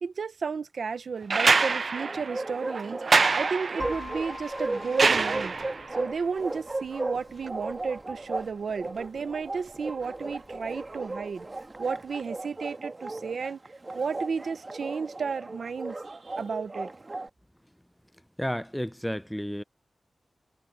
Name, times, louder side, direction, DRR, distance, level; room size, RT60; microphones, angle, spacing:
voice 1, 0.0-3.0 3.3-5.5 5.9-11.5 11.8-13.6 13.9-16.9, right 5 dB, 90° right, 1.0 m, -33 dB
sound 1, 1.3-5.9 7.5-7.6, right 4 dB, 65° right, 0.4 m, -26 dB
Bark, 2.0-17.3, right 2 dB, 40° right, 1.6 m, -36 dB
sound 2, 3.8-11.6, left 2 dB, 40° left, 3.6 m, -46 dB
voice 2, 18.4-19.6, equal, 5° left, 0.5 m, -31 dB
cardioid pair, 50°, 0 cm